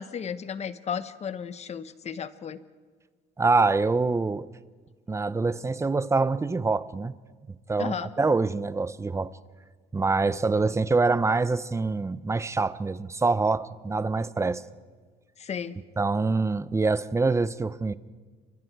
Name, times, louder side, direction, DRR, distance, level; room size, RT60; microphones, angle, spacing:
voice 1, 0.0-2.6 7.8-8.1 15.4-15.8, left 7 dB, 40° left, 1.1 m, -34 dB
voice 2, 3.4-4.5 5.1-7.1 7.5-9.3 9.9-14.6 16.0-17.9, right 3 dB, 15° right, 0.7 m, -25 dB
29.0 x 24.0 x 4.7 m
cardioid pair, 110°, 17 cm